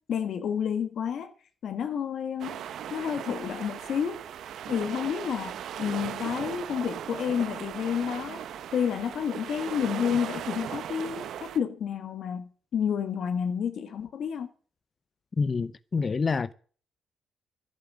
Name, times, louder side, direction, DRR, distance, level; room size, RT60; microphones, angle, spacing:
voice 1, 0.1-1.3 1.6-2.6 2.9-4.2 4.7-8.4 8.7-14.5, left 8 dB, 65° left, 1.7 m, -30 dB
sound 1, 2.4-11.6, right 9 dB, 70° right, 1.0 m, -38 dB
voice 2, 15.4-16.5, left 4 dB, 35° left, 0.6 m, -27 dB
11.5 x 8.6 x 7.4 m
cardioid pair, 90°, 0 cm